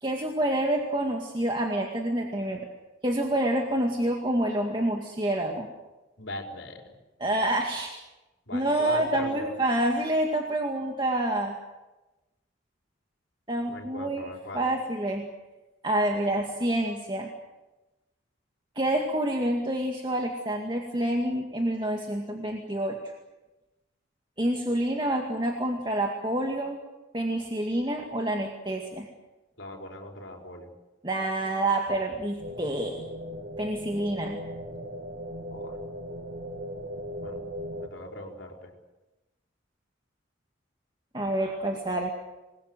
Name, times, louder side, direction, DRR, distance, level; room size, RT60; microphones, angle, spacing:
voice 1, 0.0-2.7 3.0-5.7 7.2-8.0 8.5-11.6 13.5-15.3 15.8-17.3 18.8-23.0 24.4-26.8 27.1-29.1 31.0-33.0 33.6-34.4 41.1-42.1, right 1 dB, 25° right, 2 dB, 2.1 m, -28 dB
voice 2, 6.2-6.8 8.5-9.5 13.7-14.7 29.6-30.7 34.7-34.9 35.5-35.7 37.2-37.4 37.8-38.7, left 1 dB, 65° left, 1 dB, 4.7 m, -39 dB
sound 1, 32.4-37.9, equal, 50° right, 2.5 m, -38 dB
27.0 x 21.0 x 8.0 m, 1.1 s
head